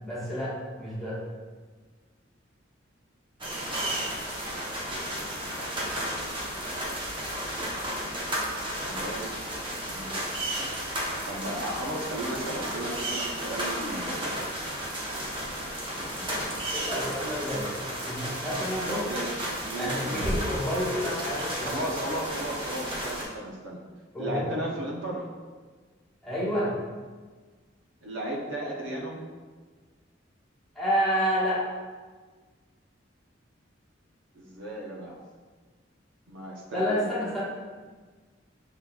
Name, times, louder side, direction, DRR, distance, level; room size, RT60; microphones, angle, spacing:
voice 1, 0.0-1.2 16.7-17.7 18.0-19.1 19.8-21.7 24.1-24.4 26.2-26.8 30.7-31.8 36.7-37.4, equal, ahead, -9 dB, 1.3 m, -29 dB
sound 1, 3.4-23.2, right 1 dB, 25° right, 0.8 m, -33 dB
voice 2, 8.8-9.6 9.8-10.1 11.3-14.4 15.6-16.3 19.0-20.4 21.7-23.8 24.2-25.3 28.0-29.2 34.3-35.2 36.3-37.1, right 1 dB, 85° right, -2 dB, 0.8 m, -35 dB
5.7 x 3.9 x 2.3 m, 1.4 s
head